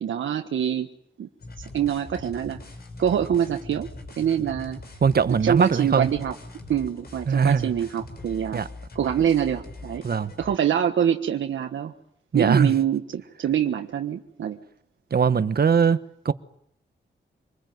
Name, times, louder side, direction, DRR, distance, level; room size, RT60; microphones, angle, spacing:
voice 1, 0.0-0.9 1.2-1.3 1.7-2.6 3.0-3.9 4.2-4.8 5.3-6.3 6.7-8.6 8.9-10.0 10.4-11.9 12.3-14.6, right 9 dB, 90° right, 1.4 m, -25 dB
sound 1, 1.4-10.6, left 2 dB, 55° left, 5.3 m, -42 dB
voice 2, 5.0-6.1 7.3-7.7 8.5-8.7 10.0-10.3 12.3-12.7 15.1-16.0 16.2-16.3, right 6 dB, 55° right, 1.3 m, -20 dB
26.0 x 21.0 x 9.4 m
cardioid pair, 80°, 19 cm